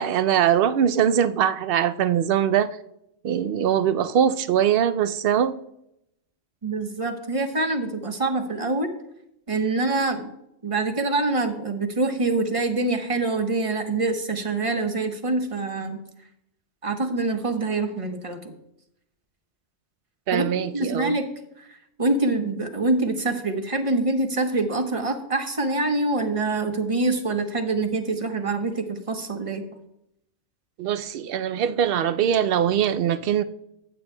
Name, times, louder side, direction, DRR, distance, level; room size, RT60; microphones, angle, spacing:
voice 1, 0.0-2.8 3.2-5.5 20.3-21.2 30.8-33.4, right 9 dB, 60° right, 0.7 m, -22 dB
voice 2, 6.6-8.9 9.5-10.3 10.6-16.0 16.8-18.4 20.3-20.5 20.7-21.3 21.6-21.7 22.0-29.6, right 2 dB, 30° right, 1.0 m, -25 dB
15.0 x 8.8 x 2.2 m
omnidirectional pair, 1.2 m